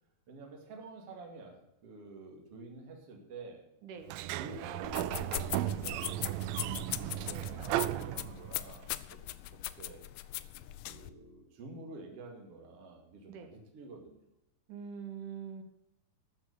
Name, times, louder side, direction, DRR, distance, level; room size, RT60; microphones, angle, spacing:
voice 1, 0.3-3.6 4.4-9.2 9.8-10.0 10.9-14.2, right 3 dB, 45° right, 1 dB, 3.0 m, -49 dB
voice 2, 3.8-4.1 7.2-7.5 13.3-13.5 14.7-15.6, right 7 dB, 65° right, 6 dB, 2.8 m, -44 dB
Sliding door, 4.0-8.8, right 15 dB, 90° right, 2.4 m, -35 dB
sound 1, 4.8-11.1, left 15 dB, 80° left, 2.1 m, -40 dB
13.5 x 6.2 x 8.2 m, 0.83 s
omnidirectional pair, 4.1 m